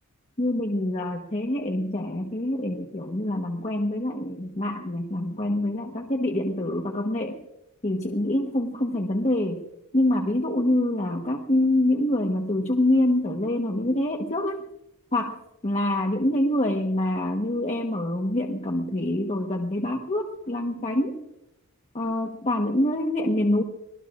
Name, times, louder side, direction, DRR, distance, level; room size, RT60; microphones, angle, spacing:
voice 1, 0.4-7.4 7.8-9.6 9.9-14.6 15.1-15.4 15.6-21.2 21.9-23.6, left 1 dB, 30° left, 1 dB, 1.3 m, -25 dB
25.0 x 20.0 x 2.5 m, 0.87 s
head